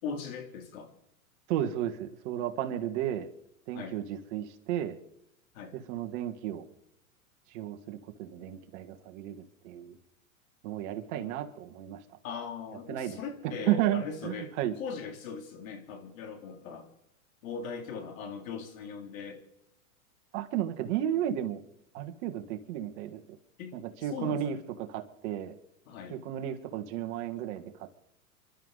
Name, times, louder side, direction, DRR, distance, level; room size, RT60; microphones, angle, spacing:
voice 1, 0.0-0.9 3.7-4.0 5.5-5.8 11.1-11.3 12.2-16.9 17.4-19.4 23.6-24.5 25.9-26.2, left 5 dB, 65° left, 5 dB, 3.2 m, -40 dB
voice 2, 1.5-3.3 3.7-5.0 5.9-6.7 7.5-10.0 10.6-12.0 12.9-13.2 13.4-14.7 20.3-21.6 21.9-23.2 23.7-25.5 26.1-27.7, right 11 dB, 55° right, 6 dB, 1.9 m, -33 dB
29.0 x 12.0 x 4.1 m, 0.80 s
hypercardioid pair, 115°, 44 cm